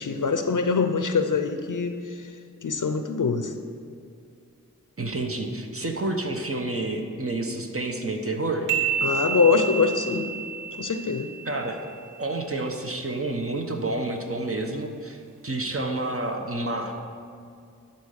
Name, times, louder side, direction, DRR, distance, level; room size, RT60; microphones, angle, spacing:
voice 1, 0.0-2.3 2.6-3.5 9.0-10.3 10.8-11.3, left 5 dB, 70° left, 7 dB, 0.5 m, -24 dB
voice 2, 5.0-8.7 11.4-11.8 12.2-17.0, right 2 dB, 45° right, 3 dB, 1.0 m, -29 dB
sound 1, 8.7-12.2, right 7 dB, 70° right, 0.9 m, -30 dB
10.5 x 4.3 x 6.4 m, 2.3 s
wide cardioid pair, 45°, 32 cm